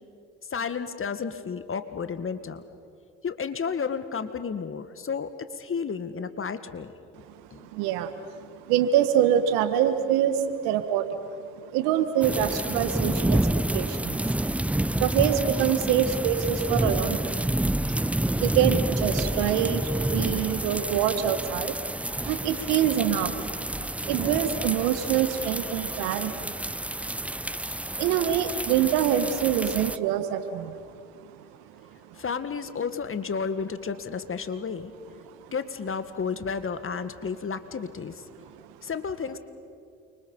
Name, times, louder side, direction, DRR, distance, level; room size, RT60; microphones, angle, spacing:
voice 1, 0.5-2.6 3.2-6.9 7.5-7.7 32.1-34.9 35.5-38.3 38.8-39.4, left 6 dB, 35° left, 11 dB, 1.8 m, -32 dB
voice 2, 7.6-11.1 11.6-17.4 17.9-18.1 18.4-23.4 23.8-26.5 27.1-27.2 27.5-27.6 28.0-30.8 32.1-32.2 35.4-35.5, right 10 dB, 75° right, 10 dB, 1.8 m, -26 dB
sound 1, 12.2-30.0, right 1 dB, 5° right, 0.5 m, -29 dB
29.0 x 24.5 x 5.6 m, 2.3 s
hypercardioid pair, 55°, 36 cm